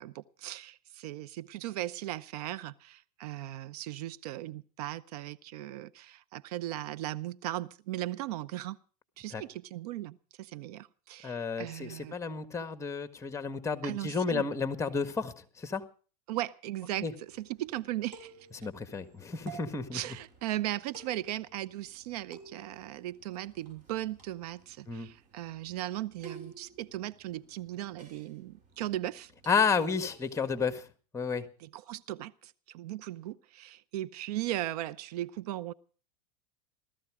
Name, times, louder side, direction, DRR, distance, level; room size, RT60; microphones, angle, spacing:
voice 1, 0.0-8.8 9.2-12.1 13.8-14.5 16.3-18.3 19.9-29.3 31.6-35.7, right 14 dB, 70° right, 18 dB, 0.7 m, -37 dB
voice 2, 11.2-15.8 17.0-17.1 18.5-20.0 24.9-25.1 29.5-30.9 31.1-31.4, left 5 dB, 15° left, 10 dB, 1.7 m, -31 dB
sound 1, 17.2-30.5, right 5 dB, 40° right, 5.9 m, -54 dB
17.5 x 14.0 x 4.9 m, 0.39 s
supercardioid pair, 115°, 20 cm